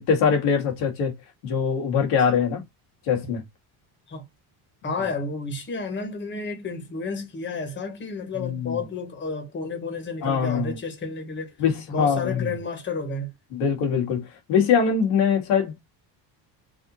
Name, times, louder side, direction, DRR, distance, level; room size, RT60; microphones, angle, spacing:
voice 1, 0.1-1.1 1.4-2.6 3.1-3.4 8.4-8.8 10.2-10.7 11.6-12.5 13.5-14.2 14.5-15.8, left 6 dB, 85° left, 2.1 m, -22 dB
voice 2, 4.8-11.5 11.9-13.3, left 4 dB, 25° left, 1.5 m, -31 dB
4.1 x 2.7 x 4.2 m
cardioid pair, 145°, 45 cm